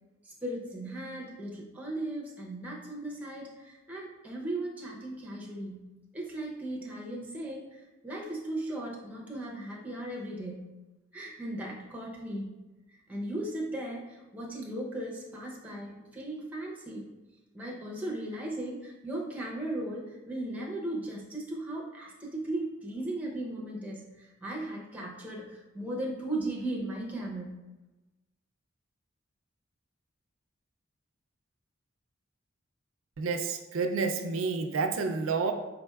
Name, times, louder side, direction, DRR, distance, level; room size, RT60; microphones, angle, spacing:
voice 1, 0.2-5.9 6.1-10.7 11.1-12.6 13.1-17.1 17.5-27.6, right 1 dB, 5° right, -3 dB, 0.6 m, -37 dB
voice 2, 33.2-35.5, right 4 dB, 75° right, 6 dB, 0.4 m, -29 dB
4.2 x 3.9 x 2.3 m, 1.1 s
head